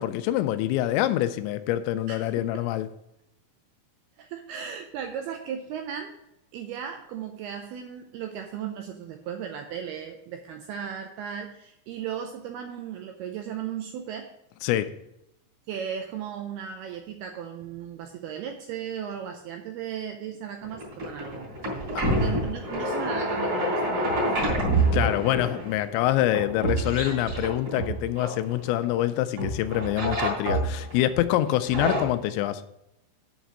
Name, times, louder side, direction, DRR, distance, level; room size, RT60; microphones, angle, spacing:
voice 1, 0.0-2.9 14.6-14.9 21.9-22.0 24.9-32.6, left 13 dB, 85° left, 11 dB, 2.8 m, -25 dB
voice 2, 2.1-2.5 4.2-6.2 6.5-14.4 15.7-24.6, right 8 dB, 85° right, 5 dB, 2.3 m, -36 dB
sound 1, 20.6-29.0 29.4-31.0 31.5-32.0, right 1 dB, 35° right, 3.6 m, -27 dB
8.1 x 5.1 x 7.4 m, 0.83 s
omnidirectional pair, 5.2 m